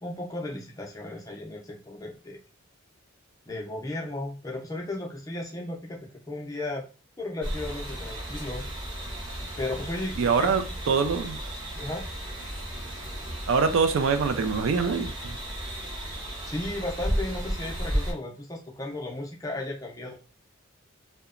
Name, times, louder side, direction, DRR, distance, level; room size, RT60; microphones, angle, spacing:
voice 1, 0.0-2.4 3.5-6.9 7.2-8.6 9.6-10.6 11.7-12.1 16.5-20.1, left 2 dB, 15° left, 0.5 m, -35 dB
sound 1, 7.4-18.1, equal, 25° right, 0.7 m, -34 dB
voice 2, 10.2-11.4 13.5-15.4, right 5 dB, 70° right, 0.3 m, -24 dB
2.9 x 2.1 x 2.3 m
head